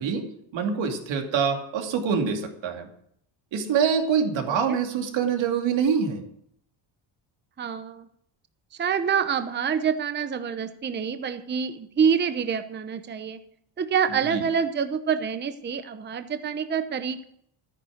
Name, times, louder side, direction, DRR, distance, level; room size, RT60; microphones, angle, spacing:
voice 1, 0.0-2.9 3.5-6.2 14.2-14.4, right 6 dB, 65° right, 4 dB, 2.7 m, -25 dB
voice 2, 7.6-8.1 8.8-13.4 13.8-17.3, right 7 dB, 20° right, 10 dB, 0.8 m, -26 dB
13.5 x 10.0 x 6.4 m, 0.69 s
cardioid pair, 145°, 48 cm